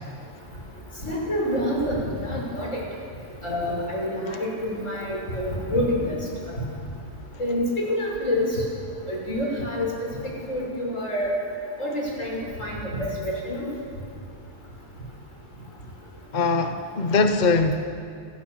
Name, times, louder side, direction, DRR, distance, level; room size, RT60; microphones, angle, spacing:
voice 1, 1.0-2.8 3.4-6.2 7.4-8.5 9.1-9.9 10.5-11.3 11.8-13.6, left 1 dB, 85° left, -3 dB, 6.8 m, -27 dB
voice 2, 16.3-17.7, left 3 dB, 40° left, 7 dB, 1.1 m, -21 dB
29.5 x 16.5 x 7.3 m, 2.5 s
omnidirectional pair, 1.3 m